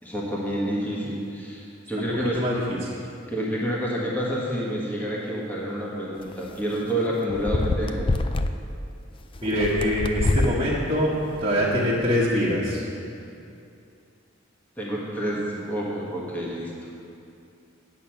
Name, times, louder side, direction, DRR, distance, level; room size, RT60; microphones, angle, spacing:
voice 1, 0.0-2.4 3.3-8.1 14.8-16.7, equal, 10° left, -5 dB, 1.5 m, -28 dB
voice 2, 2.3-3.0 9.4-11.1 11.4-12.8, equal, 20° right, -10 dB, 1.4 m, -24 dB
sound 1, 6.3-6.5 7.3-8.5 9.4-10.6 11.3-11.7, left 2 dB, 25° left, 0.4 m, -26 dB
8.4 x 8.4 x 5.9 m, 2.6 s
head